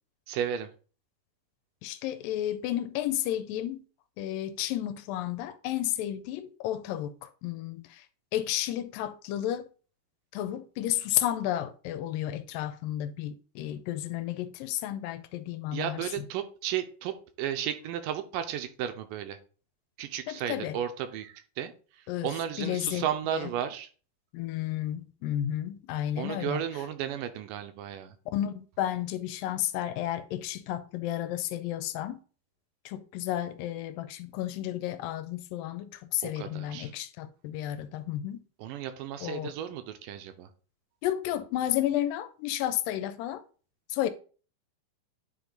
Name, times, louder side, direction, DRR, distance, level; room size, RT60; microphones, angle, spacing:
voice 1, 0.3-0.7 15.7-19.4 20.0-23.9 26.2-28.2 36.2-36.9 38.6-40.5, right 10 dB, 80° right, 2.2 m, -34 dB
voice 2, 1.8-3.8 4.2-8.0 8.3-9.7 10.3-16.3 20.3-20.8 22.1-22.3 22.6-23.1 23.3-23.5 24.3-26.6 28.3-32.2 32.9-38.4 39.2-39.5 41.0-43.4 43.9-44.1, left 12 dB, 85° left, 2.3 m, -32 dB
9.5 x 3.7 x 3.9 m
omnidirectional pair, 4.0 m